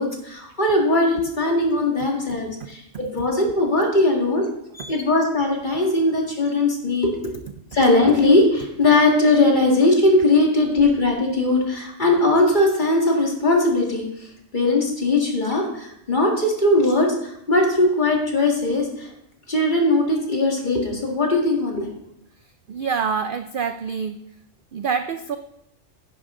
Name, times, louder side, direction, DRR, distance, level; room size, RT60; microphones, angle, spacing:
voice 1, 0.0-4.5 4.9-7.3 7.7-19.1 19.5-21.9, left 2 dB, 35° left, 0 dB, 2.1 m, -20 dB
voice 2, 4.7-5.0 22.7-24.2 24.7-25.4, right 6 dB, 60° right, 9 dB, 0.5 m, -26 dB
10.5 x 9.9 x 3.8 m, 0.77 s
omnidirectional pair, 1.4 m